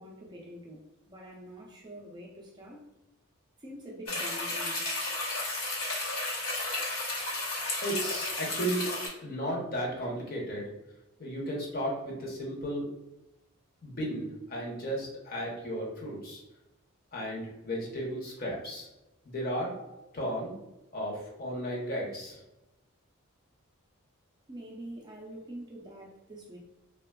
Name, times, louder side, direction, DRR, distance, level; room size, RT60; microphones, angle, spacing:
voice 1, 0.0-2.8 3.6-4.9 24.5-26.6, right 1 dB, 20° right, -3 dB, 0.4 m, -45 dB
sound 1, 4.1-9.1, left 2 dB, 80° left, 0.8 m, -33 dB
voice 2, 7.8-8.9 9.2-10.7 11.2-12.9 13.8-16.4 17.1-18.9 19.2-20.5 20.9-22.4, equal, 45° left, -3 dB, 0.8 m, -34 dB
3.3 x 2.2 x 2.2 m, 0.94 s
head